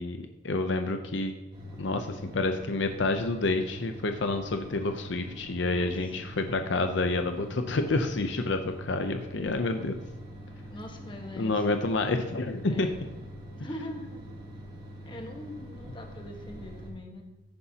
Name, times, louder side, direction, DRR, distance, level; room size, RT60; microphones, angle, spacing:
voice 1, 0.0-1.3 1.8-10.0 11.4-12.9, left 2 dB, 65° left, 7 dB, 0.7 m, -29 dB
sound 1, 1.5-16.9, equal, 25° right, 3.0 m, -44 dB
voice 2, 5.6-6.0 10.7-11.7 12.7-13.0 13.6-14.2 15.0-17.3, left 1 dB, 25° left, 2 dB, 1.4 m, -42 dB
15.0 x 9.7 x 2.9 m, 1.2 s
head